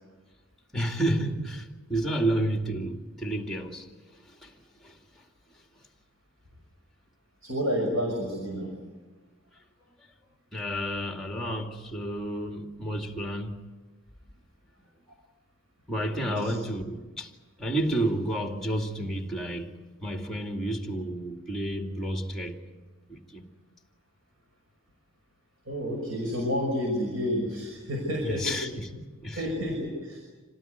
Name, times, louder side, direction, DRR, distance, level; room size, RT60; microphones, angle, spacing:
voice 1, 0.7-3.9 4.3-4.5 4.8-5.0 10.5-13.6 15.9-17.3 17.6-19.7 20.0-22.6 23.1-23.5 28.2-29.4, right 1 dB, ahead, 2.4 m, -31 dB
voice 2, 7.4-8.7 16.2-16.5 25.7-28.6 29.4-30.2, equal, 85° right, 6.0 m, -30 dB
26.5 x 18.5 x 9.5 m
head